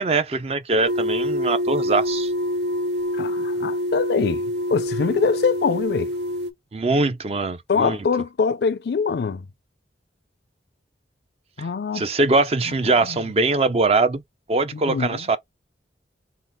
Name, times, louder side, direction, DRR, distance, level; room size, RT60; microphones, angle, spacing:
voice 1, 0.0-2.3 6.7-8.0 11.9-14.2 14.5-15.4, right 3 dB, 35° right, 0.4 m, -22 dB
sound 1, 0.9-6.5, equal, 70° right, 0.7 m, -26 dB
voice 2, 3.2-4.4 4.7-6.1 7.7-9.4 11.6-12.0 13.1-13.2 14.7-15.2, left 5 dB, 60° left, 0.4 m, -23 dB
3.6 x 2.3 x 3.9 m
head